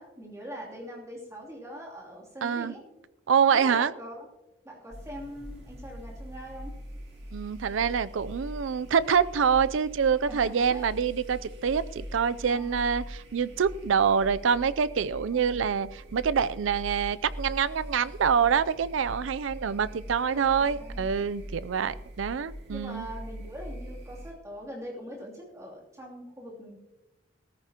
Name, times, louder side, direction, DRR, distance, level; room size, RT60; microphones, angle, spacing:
voice 1, 0.0-2.8 3.5-4.3 4.6-6.7 10.3-11.0 12.5-12.8 15.3-15.8 20.3-21.1 22.7-26.8, equal, 15° right, -3 dB, 2.9 m, -42 dB
voice 2, 2.4-2.8 3.3-3.9 7.3-23.1, right 7 dB, 80° right, 16 dB, 0.4 m, -26 dB
sound 1, 4.9-24.3, equal, 60° right, 2.4 m, -42 dB
16.5 x 14.0 x 2.9 m, 1.0 s
head